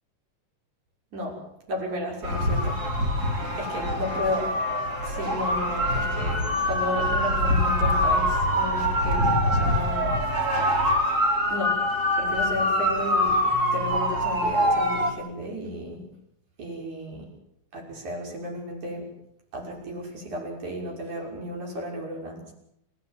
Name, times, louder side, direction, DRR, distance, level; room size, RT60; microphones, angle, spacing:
voice 1, 1.1-1.4 1.7-2.8 3.6-4.5 5.0-11.0 11.5-11.8 12.2-13.4 13.7-16.1 16.6-17.3 17.7-19.1 19.5-22.5, left 1 dB, 60° right, 0 dB, 7.4 m, -33 dB
sound 1, 2.2-15.1, left 1 dB, 30° right, 3.3 m, -24 dB
28.0 x 16.5 x 9.2 m, 0.76 s
omnidirectional pair, 3.8 m